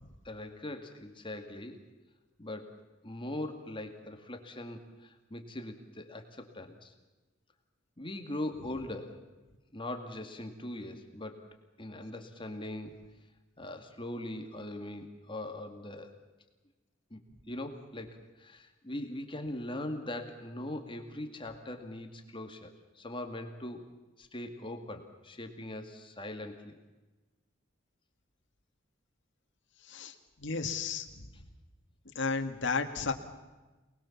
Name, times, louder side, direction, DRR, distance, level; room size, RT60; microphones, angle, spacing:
voice 1, 0.2-1.9 2.4-6.9 8.0-9.2 9.7-11.5 11.8-13.0 13.6-16.2 17.1-17.2 17.5-23.8 24.2-26.8, left 1 dB, 25° left, 5 dB, 2.1 m, -41 dB
voice 2, 29.8-31.3 32.2-33.1, left 4 dB, 60° left, 6 dB, 2.1 m, -33 dB
28.0 x 20.5 x 7.2 m, 1.2 s
head